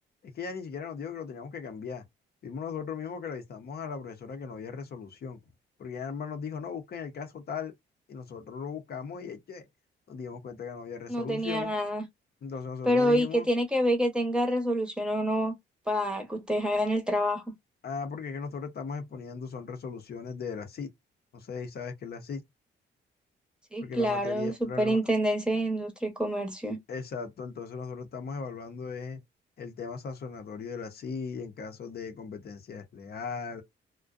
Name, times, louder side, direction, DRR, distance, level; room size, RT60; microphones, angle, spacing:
voice 1, 0.2-2.0 2.4-5.4 5.8-7.7 8.1-9.7 10.1-11.7 12.4-13.5 17.8-20.9 21.3-22.4 23.8-25.0 26.9-29.2 29.6-33.6, left 5 dB, 50° left, 0.7 m, -38 dB
voice 2, 11.1-12.0 12.9-15.5 15.9-17.4 23.7-26.8, equal, 5° right, 0.8 m, -27 dB
2.5 x 2.2 x 2.3 m
cardioid pair, 90°, 20 cm